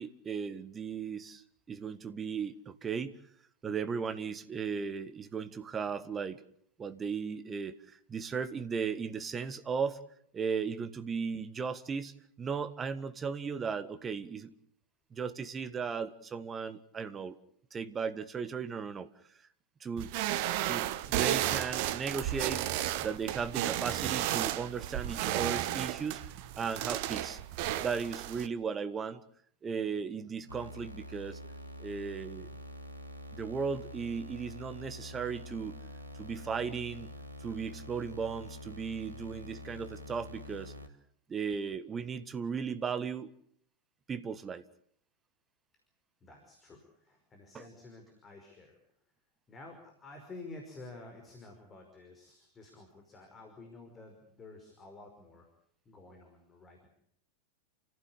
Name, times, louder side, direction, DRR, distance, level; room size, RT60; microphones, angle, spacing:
voice 1, 0.0-1.4 1.7-3.2 3.6-6.4 6.8-7.8 8.1-10.0 10.3-14.5 15.1-17.4 17.7-19.1 19.8-20.2 20.6-27.4 27.8-29.2 29.6-31.4 31.8-32.5 33.3-35.8 36.2-37.1 37.4-40.7 41.3-43.3 44.1-44.6 47.5-47.6, right 6 dB, 20° right, 12 dB, 1.6 m, -36 dB
sound 1, 20.0-28.5, right 13 dB, 45° right, 1.1 m, -33 dB
sound 2, 30.5-40.9, left 1 dB, 80° right, 3.2 m, -46 dB
voice 2, 46.2-48.8 49.5-55.5 55.9-56.9, left 3 dB, 20° left, 3 dB, 5.3 m, -51 dB
29.5 x 15.5 x 8.5 m, 0.67 s
figure-of-eight pair, 90°, 0 cm